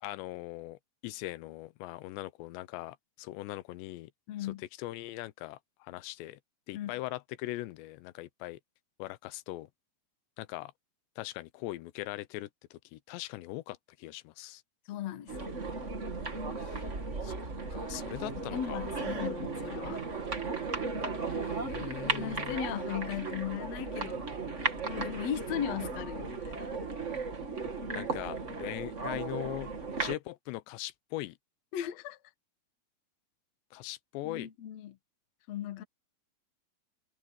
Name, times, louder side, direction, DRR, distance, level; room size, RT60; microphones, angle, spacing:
voice 1, 0.0-4.1 4.4-4.5 4.8-6.4 6.7-8.6 9.0-9.7 10.4-10.7 11.2-14.6 16.6-16.8 17.2-17.4 17.7-18.8 21.2-22.6 27.9-29.7 30.0-31.4 33.7-34.5, left 17 dB, 85° left, 3.0 m, -40 dB
voice 2, 4.3-4.6 6.7-6.9 14.9-15.4 18.5-20.1 22.1-24.3 24.8-26.7 31.7-32.2 34.2-35.0 35.5-35.8, left 10 dB, 60° left, 1.8 m, -37 dB
sound 1, 15.3-30.1, right 4 dB, 45° right, 0.9 m, -36 dB
omnidirectional pair, 4.9 m